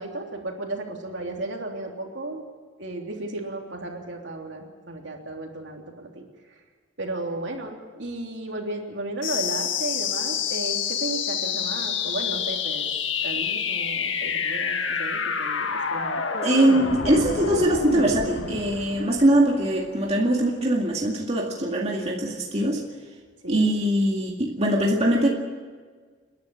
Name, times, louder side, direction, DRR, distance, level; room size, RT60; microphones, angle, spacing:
voice 1, 0.0-2.4 2.8-6.2 6.5-6.6 7.0-12.9 13.2-16.5 23.4-23.8, right 2 dB, 65° right, 1 dB, 3.3 m, -34 dB
sound 1, 9.2-20.2, left 6 dB, 75° left, 1.7 m, -28 dB
voice 2, 16.4-22.8 23.5-25.3, right 1 dB, 35° right, -1 dB, 2.2 m, -22 dB
28.5 x 11.5 x 9.9 m, 1.5 s
head